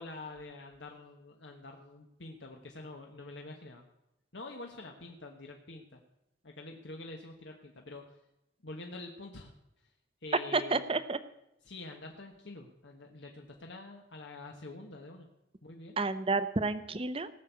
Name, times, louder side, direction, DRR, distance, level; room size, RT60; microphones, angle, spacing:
voice 1, 0.0-3.8 4.3-6.0 6.4-8.2 8.6-9.5 9.8-9.9 10.2-10.9 11.6-15.3 15.6-16.0, left 2 dB, 75° left, 2 dB, 1.4 m, -46 dB
voice 2, 10.5-11.2 16.0-17.3, right 3 dB, 30° right, 13 dB, 0.7 m, -30 dB
18.0 x 6.3 x 8.2 m, 0.85 s
head